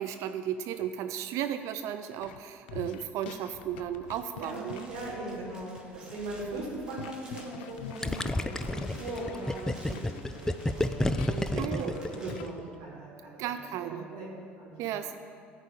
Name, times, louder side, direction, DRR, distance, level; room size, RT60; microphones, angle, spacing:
voice 1, 0.0-4.9 6.4-6.6 11.6-11.9 13.4-14.1 14.8-15.2, right 10 dB, 60° right, 9 dB, 0.5 m, -35 dB
sound 1, 2.2-2.4 2.7-12.5, left 9 dB, 80° left, 0.4 m, -47 dB
sound 2, 4.0-12.3, right 1 dB, 15° right, 2.5 m, -54 dB
voice 2, 4.3-13.5 13.8-14.9, right 2 dB, 75° right, -7 dB, 3.1 m, -40 dB
Gurgling, 8.0-12.7, left 1 dB, 10° left, 0.5 m, -30 dB
14.0 x 4.7 x 8.4 m, 2.3 s
hypercardioid pair, 65°, 6 cm